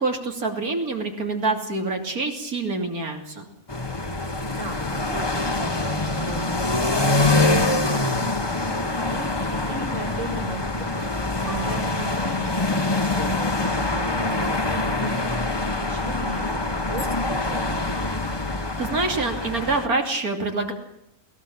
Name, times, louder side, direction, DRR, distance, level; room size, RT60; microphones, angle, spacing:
voice 1, 0.0-3.5 11.4-11.8 18.8-20.7, right 3 dB, 80° right, 4 dB, 3.5 m, -26 dB
sound 1, 3.7-19.9, left 2 dB, 20° left, 1.2 m, -25 dB
voice 2, 4.5-11.1 11.4-17.8, right 1 dB, 30° right, 3 dB, 2.6 m, -37 dB
22.0 x 19.0 x 7.3 m, 0.77 s
omnidirectional pair, 1.5 m